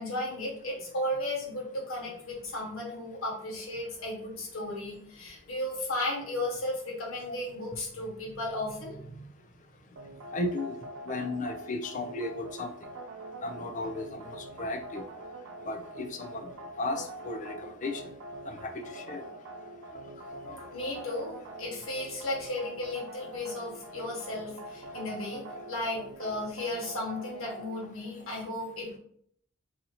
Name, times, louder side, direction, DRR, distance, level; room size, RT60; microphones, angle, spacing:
voice 1, 0.0-9.3 20.7-25.4 25.7-29.0, left 1 dB, 80° left, -2 dB, 1.3 m, -35 dB
sound 1, 10.0-27.9, right 1 dB, 80° right, 0.5 m, -44 dB
voice 2, 10.3-12.7 13.4-15.0 15.7-18.0 18.5-19.2 19.8-20.0 20.3-21.2, left 2 dB, 40° left, 4 dB, 0.5 m, -36 dB
2.8 x 2.7 x 4.0 m, 0.63 s
head